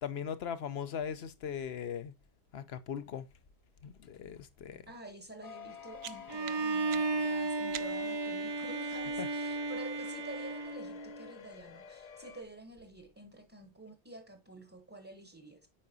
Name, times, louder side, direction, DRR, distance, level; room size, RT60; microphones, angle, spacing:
voice 1, 0.0-2.1 2.5-3.3 3.8-4.8 9.2-9.3, left 8 dB, 75° left, 1.0 m, -39 dB
voice 2, 4.9-15.7, right 2 dB, 15° right, 0.8 m, -49 dB
sound 1, 5.4-12.4, left 7 dB, 45° left, 0.6 m, -51 dB
sound 2, 5.6-8.3, right 11 dB, 80° right, 0.8 m, -48 dB
Bowed string instrument, 6.3-11.3, right 3 dB, 40° right, 0.4 m, -34 dB
8.6 x 4.8 x 2.7 m
omnidirectional pair, 1.1 m